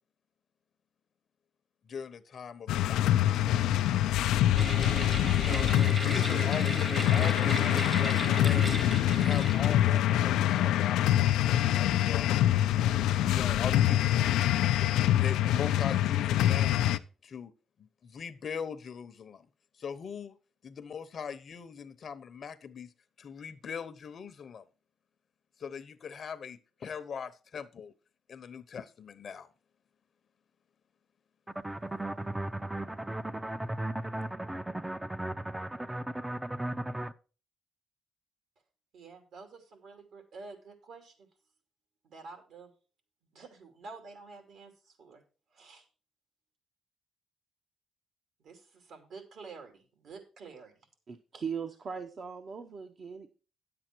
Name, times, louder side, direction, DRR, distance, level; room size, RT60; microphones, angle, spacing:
voice 1, 1.8-3.8 5.3-5.8 6.0-6.8 7.1-12.3 12.8-16.8 17.2-17.5 17.8-19.5 19.8-20.4 20.6-22.9 23.2-24.6 25.6-27.9 28.3-29.5, left 6 dB, 50° left, 0.8 m, -41 dB
sound 1, 2.7-17.0, left 13 dB, 90° left, 0.4 m, -25 dB
sound 2, 4.5-10.2, right 1 dB, 25° right, 1.0 m, -36 dB
sound 3, 31.5-37.1, right 1 dB, 10° right, 0.5 m, -36 dB
voice 2, 38.9-41.3 42.0-42.7 43.3-45.2 45.5-45.9 48.4-50.9, right 4 dB, 70° right, 2.5 m, -49 dB
voice 3, 51.1-53.3, right 6 dB, 45° right, 0.8 m, -39 dB
9.9 x 7.8 x 4.5 m
cardioid pair, 90°, 0 cm